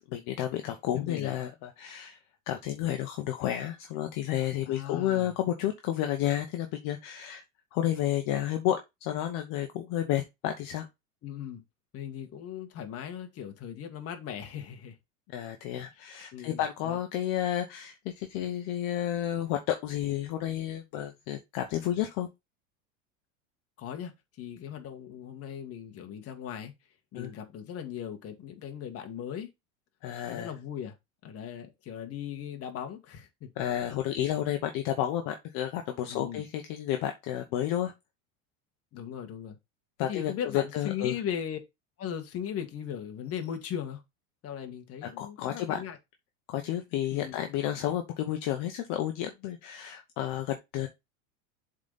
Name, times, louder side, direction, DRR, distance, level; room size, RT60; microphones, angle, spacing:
voice 1, 0.1-2.2 2.5-7.4 7.7-10.9 15.3-22.3 27.1-27.3 30.0-30.5 33.6-37.9 40.0-41.2 45.0-45.8 46.5-50.9, left 12 dB, 50° left, 1.0 m, -31 dB
voice 2, 1.0-1.3 4.7-5.4 11.2-11.6 11.9-15.0 15.7-15.8 16.3-17.0 23.8-24.1 24.4-26.7 27.1-29.5 30.3-30.9 31.2-33.6 36.1-36.4 38.9-39.6 40.1-41.6 42.0-44.0 44.4-46.0 47.1-47.4, left 9 dB, 35° left, 1.6 m, -38 dB
7.2 x 4.0 x 3.9 m
supercardioid pair, 130°, 41 cm